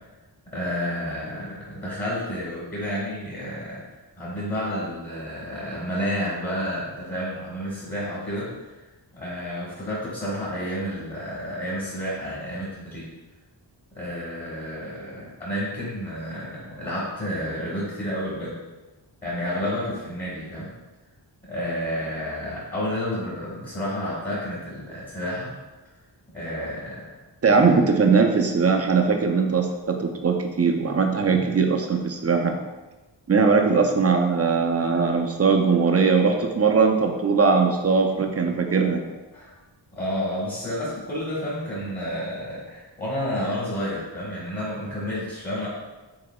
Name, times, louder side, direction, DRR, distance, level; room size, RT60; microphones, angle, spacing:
voice 1, 0.5-3.8 4.2-8.8 9.1-13.1 13.9-18.6 19.2-20.7 21.5-25.5 26.3-27.1 27.5-27.6 39.3-39.5 39.9-45.7, equal, 20° left, -8 dB, 1.3 m, -30 dB
voice 2, 27.4-32.6 33.3-39.0, right 5 dB, 35° right, 4 dB, 0.4 m, -20 dB
4.9 x 3.9 x 2.2 m, 1.1 s
wide cardioid pair, 100°, 44 cm